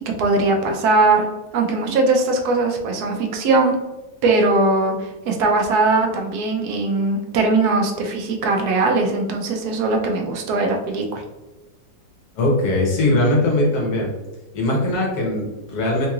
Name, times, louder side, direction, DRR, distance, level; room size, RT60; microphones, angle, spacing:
voice 1, 0.2-1.3 1.5-3.8 4.2-11.2, right 3 dB, 75° right, 3 dB, 1.1 m, -20 dB
voice 2, 12.4-14.1 14.5-16.1, left 1 dB, 75° left, -2 dB, 1.5 m, -20 dB
3.7 x 2.9 x 2.4 m, 1.1 s
omnidirectional pair, 1.7 m